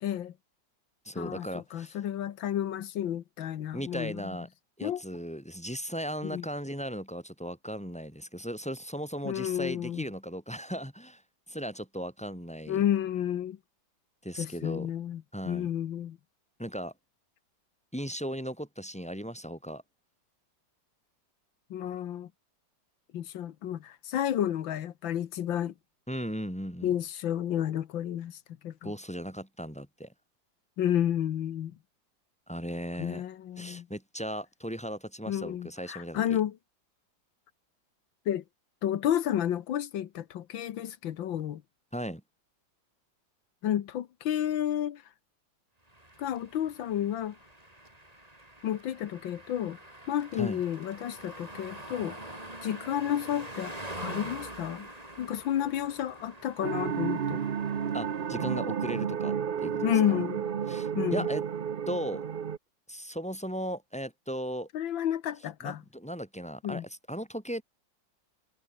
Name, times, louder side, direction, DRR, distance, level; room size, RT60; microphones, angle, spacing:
voice 1, 0.0-0.3 1.2-4.4 4.8-5.0 6.2-6.5 9.3-10.0 12.7-13.6 14.4-16.2 21.7-22.3 23.1-25.7 26.8-28.9 30.8-31.8 33.0-33.9 35.3-36.6 38.3-38.4 38.8-41.6 43.6-45.0 46.2-47.4 48.6-49.8 50.1-52.2 52.6-54.9 55.2-57.4 59.8-60.5 61.0-61.3 64.7-65.8 66.6-66.9, left 10 dB, 85° left, 1.8 m, -31 dB
voice 2, 1.0-2.0 3.7-4.5 4.8-11.2 11.5-12.8 14.2-14.9 15.3-15.7 16.6-16.9 17.9-19.8 26.1-26.9 28.8-30.1 32.5-33.2 33.6-36.2 41.9-42.2 50.4-50.6 57.9-60.0 60.7-61.4 61.9-62.3 62.9-64.7 65.6-67.6, equal, 5° left, 7.9 m, -37 dB
sound 1, 45.9-58.9, right 1 dB, 20° right, 5.2 m, -45 dB
sound 2, 56.6-62.6, right 7 dB, 65° right, 0.5 m, -31 dB
omnidirectional pair, 2.1 m